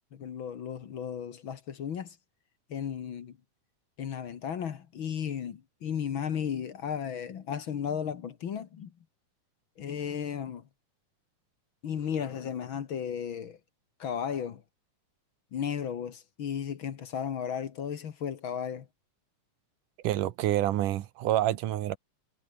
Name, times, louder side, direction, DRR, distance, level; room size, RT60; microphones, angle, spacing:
voice 1, 0.1-2.2 2.7-3.3 4.0-8.9 9.8-10.6 11.8-13.6 14.0-14.6 15.5-18.9, left 8 dB, 50° left, 1.7 m, -34 dB
voice 2, 20.0-22.0, right 13 dB, 85° right, 2.7 m, -27 dB
omnidirectional pair, 3.7 m